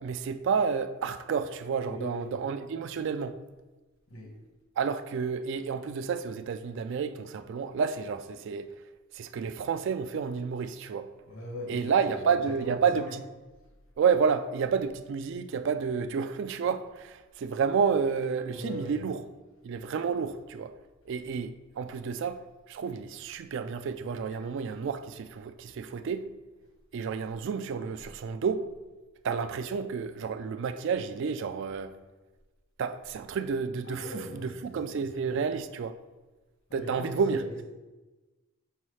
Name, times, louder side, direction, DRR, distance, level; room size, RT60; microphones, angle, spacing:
voice 1, 0.0-3.3 4.8-8.7 9.1-11.1 11.7-13.2 14.0-19.2 19.6-20.7 21.1-22.4 22.7-26.3 26.9-28.7 29.2-31.9 32.8-36.0 36.7-37.4, right 6 dB, 60° right, 0.3 m, -30 dB
voice 2, 1.8-2.3 4.1-4.3 11.2-13.1 18.5-18.9 24.3-24.4 33.8-35.4 36.7-37.6, left 1 dB, 65° left, 1.3 m, -41 dB
5.6 x 5.4 x 3.2 m
head